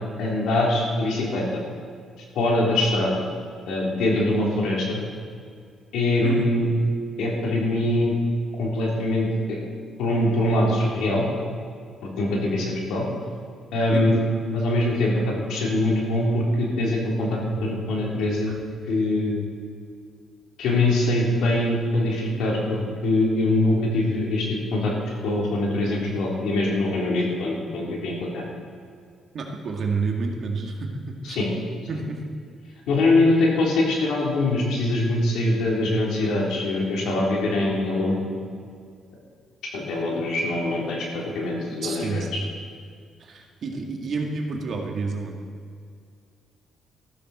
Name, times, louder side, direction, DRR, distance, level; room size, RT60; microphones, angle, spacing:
voice 1, 0.2-1.6 2.3-3.1 3.7-5.0 5.9-6.7 7.2-8.1 8.6-9.6 10.0-11.3 12.2-13.1 13.7-14.2 14.5-18.6 18.9-19.4 20.6-24.9 25.2-28.4 31.2-31.5 32.9-38.2 39.7-42.2, left 2 dB, 85° left, -3 dB, 3.6 m, -23 dB
voice 2, 6.2-6.5 13.9-14.2 17.5-17.6 18.5-18.6 29.3-31.4 31.9-32.2 41.8-42.4 43.2-45.3, right 4 dB, 60° right, 1 dB, 2.1 m, -29 dB
14.0 x 13.0 x 4.4 m, 2.2 s
cardioid pair, 90°, 0 cm